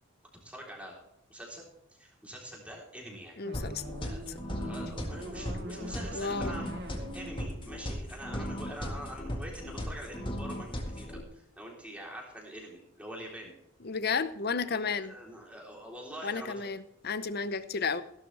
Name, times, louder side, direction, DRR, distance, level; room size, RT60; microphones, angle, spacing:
voice 1, 0.4-1.0 1.3-1.6 2.0-3.4 4.0-13.5 14.7-16.7, equal, 5° right, -1 dB, 3.7 m, -45 dB
voice 2, 3.4-3.8 6.1-6.5 13.8-15.1 16.2-18.0, left 5 dB, 45° left, 14 dB, 0.7 m, -32 dB
sound 1, 3.4-8.6, right 1 dB, 50° right, 1.7 m, -44 dB
sound 2, 3.5-11.2, equal, 25° left, 1.7 m, -37 dB
16.5 x 12.0 x 3.4 m, 0.80 s
head